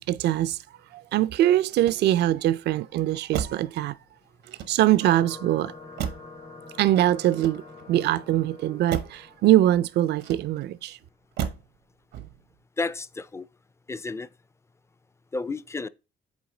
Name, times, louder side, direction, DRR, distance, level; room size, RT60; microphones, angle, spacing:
voice 1, 0.1-0.6 0.9-4.0 4.7-5.7 6.8-7.6 7.9-11.0, right 13 dB, 70° right, 0.4 m, -22 dB
Motor vehicle (road), 1.7-2.5 3.3-3.8 4.4-5.1 6.0-6.4 7.2-8.0 8.9-9.3 10.2-10.8 11.4-11.8 12.1-12.6, right 9 dB, 90° right, 0.8 m, -34 dB
sound 1, 5.0-10.2, left 3 dB, 70° left, 2.7 m, -46 dB
voice 2, 12.8-13.5 13.9-14.3 15.3-15.9, left 3 dB, 15° left, 0.4 m, -31 dB
7.1 x 4.2 x 3.8 m
cardioid pair, 90°, 18 cm